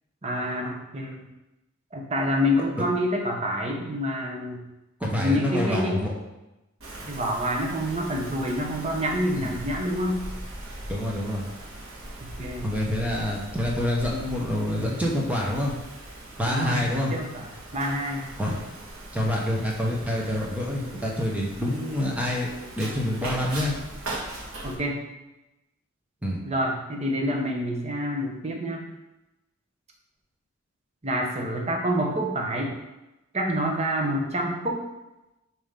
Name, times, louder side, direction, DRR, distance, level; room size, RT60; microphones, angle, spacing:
voice 1, 0.2-1.2 1.9-4.6 5.1-6.0 7.1-10.2 12.2-12.7 16.4-17.5 17.7-18.3 24.6-25.0 26.4-28.8 31.0-32.7 33.3-34.8, equal, 30° right, 0 dB, 1.1 m, -27 dB
voice 2, 5.0-6.1 9.4-9.5 10.9-11.4 12.6-15.7 16.4-17.1 18.4-18.5 19.1-22.5 22.8-23.7 26.2-26.4, left 1 dB, 5° right, -3 dB, 1.1 m, -27 dB
Wind, 6.8-24.7, right 1 dB, 80° right, 1.6 m, -40 dB
7.1 x 3.1 x 5.2 m, 0.98 s
head